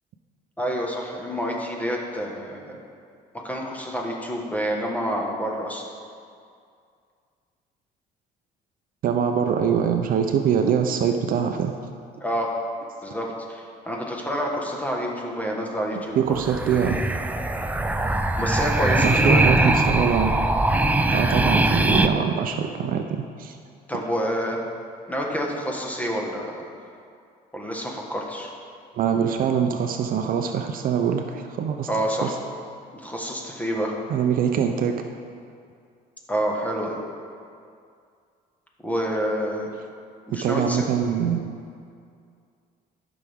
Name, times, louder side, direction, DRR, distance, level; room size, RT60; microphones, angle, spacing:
voice 1, 0.6-2.8 3.3-5.8 12.2-12.5 13.0-16.2 18.4-19.7 23.9-24.6 25.1-26.5 27.5-28.5 31.9-32.3 32.9-33.9 36.3-37.0 38.8-39.7 40.3-40.8, equal, 10° left, -1 dB, 1.4 m, -28 dB
voice 2, 9.0-11.7 16.2-17.0 19.0-20.3 21.1-23.6 29.0-31.9 32.2-32.3 34.1-34.9 40.4-41.4, right 7 dB, 55° right, 5 dB, 0.6 m, -23 dB
sound 1, 16.3-22.1, right 2 dB, 10° right, 0.4 m, -21 dB
13.5 x 6.0 x 3.5 m, 2.3 s
cardioid pair, 110°, 17 cm